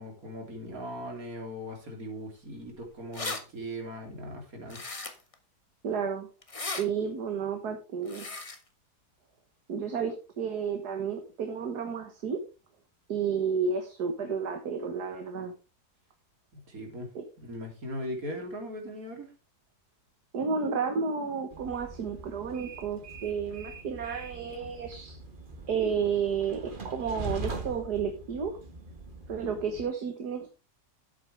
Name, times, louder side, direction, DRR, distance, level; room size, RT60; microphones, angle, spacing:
voice 1, 0.0-4.8 16.5-17.1 17.4-19.3, equal, 60° right, 2 dB, 3.7 m, -39 dB
sound 1, 2.7-2.8 2.9-3.4 4.7-5.3 6.4-6.8 8.1-8.6, left 3 dB, 20° left, 1.2 m, -36 dB
voice 2, 5.8-6.3 6.7-8.3 9.7-12.4 13.1-15.5 17.2-17.3 20.3-25.2 25.7-28.6 29.3-30.6, right 6 dB, 75° right, 5 dB, 2.0 m, -31 dB
Train, 21.5-29.8, right 3 dB, 35° right, 1.4 m, -42 dB
12.0 x 8.5 x 3.5 m, 0.30 s
omnidirectional pair, 1.7 m